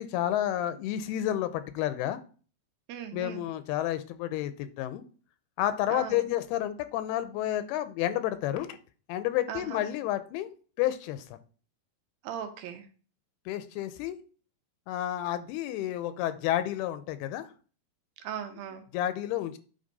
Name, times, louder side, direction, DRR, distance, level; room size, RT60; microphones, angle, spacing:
voice 1, 0.0-2.2 3.1-5.0 5.6-8.8 9.1-10.5 10.8-11.4 13.5-14.2 14.9-17.5 18.9-19.6, left 12 dB, 90° left, 11 dB, 2.6 m, -30 dB
voice 2, 2.9-3.4 5.9-6.2 9.5-9.8 12.2-12.9 18.2-18.8, right 9 dB, 80° right, 6 dB, 2.4 m, -38 dB
8.9 x 3.3 x 4.0 m, 0.39 s
omnidirectional pair, 4.5 m